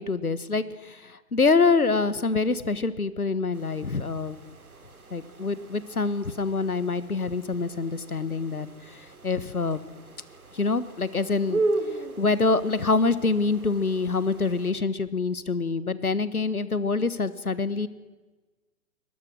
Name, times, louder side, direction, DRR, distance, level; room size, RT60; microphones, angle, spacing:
voice 1, 0.0-4.4 5.1-9.8 10.5-11.6 12.2-17.9, left 4 dB, 90° left, 15 dB, 1.4 m, -26 dB
sound 1, 3.5-14.7, right 2 dB, 80° right, 3.2 m, -36 dB
23.5 x 19.5 x 6.3 m, 1.3 s
figure-of-eight pair, 120°, 43 cm